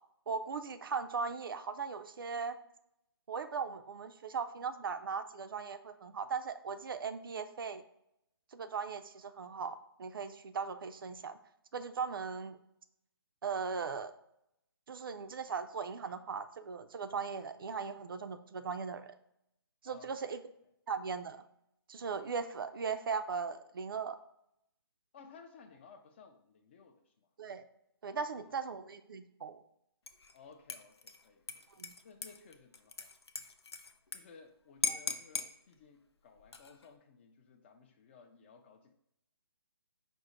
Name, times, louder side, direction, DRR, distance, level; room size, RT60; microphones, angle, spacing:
voice 1, 0.3-2.6 3.3-7.8 8.5-11.4 11.7-12.6 13.4-14.1 14.9-19.1 19.8-20.4 20.9-21.4 21.9-24.2 27.4-27.6 28.0-29.6 31.8-31.9 34.9-35.0, right 5 dB, 60° right, 9 dB, 0.4 m, -38 dB
voice 2, 19.8-20.4 25.1-27.1 28.2-28.6 30.3-33.1 34.1-38.9, left 5 dB, 25° left, 6 dB, 0.4 m, -58 dB
Dishes pots and pans / Liquid, 30.1-30.4 30.7-34.2 34.5-34.6 34.8-35.5 36.4-36.9, left 4 dB, 90° left, 0.5 m, -39 dB
5.2 x 2.1 x 4.8 m, 0.76 s
figure-of-eight pair, 150°, 13 cm